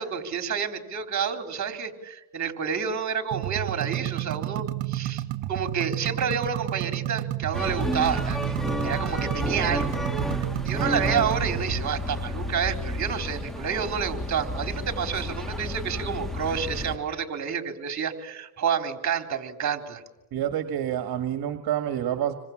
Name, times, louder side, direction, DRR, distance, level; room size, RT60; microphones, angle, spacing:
voice 1, 0.0-5.2 5.5-8.4 8.8-10.0 10.4-20.0, right 7 dB, 40° right, 6 dB, 4.0 m, -29 dB
sound 1, 3.3-11.8, right 14 dB, 85° right, 1.2 m, -31 dB
sound 2, 7.5-17.0, left 1 dB, ahead, 2.1 m, -31 dB
voice 2, 20.3-22.3, right 10 dB, 60° right, 8 dB, 1.9 m, -28 dB
27.5 x 25.0 x 7.4 m, 0.98 s
cardioid pair, 110°, 41 cm